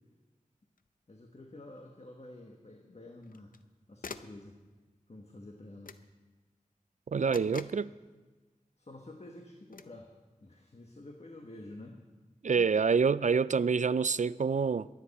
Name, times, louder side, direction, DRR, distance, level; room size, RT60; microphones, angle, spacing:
sound 1, 0.8-0.9 3.2-3.7 4.0-4.4 5.9-6.1 7.3-7.9 9.7-10.0, left 5 dB, 85° left, 0.5 m, -46 dB
voice 1, 1.1-3.5 3.9-4.6 5.1-6.0 7.1-7.4 8.8-10.1 10.4-12.0 12.5-12.7, left 1 dB, 50° left, 1.3 m, -49 dB
voice 2, 7.1-7.9 12.4-14.9, right 5 dB, 60° right, 0.4 m, -27 dB
23.5 x 9.5 x 4.2 m
wide cardioid pair, 65°, 14 cm